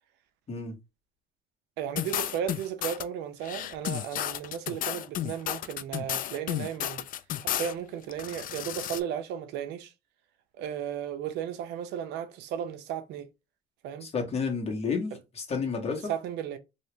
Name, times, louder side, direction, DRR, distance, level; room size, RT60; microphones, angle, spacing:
voice 1, 1.8-7.1 7.4-9.9 10.6-13.3 13.8-14.1 16.1-16.6, right 9 dB, 90° right, 0.6 m, -35 dB
sound 1, 2.0-3.0 3.4-7.7 8.1-9.0, left 12 dB, 55° left, 0.4 m, -33 dB
voice 2, 14.0-16.1, left 5 dB, 40° left, 1.3 m, -31 dB
3.0 x 2.8 x 3.2 m
cardioid pair, 110°, 17 cm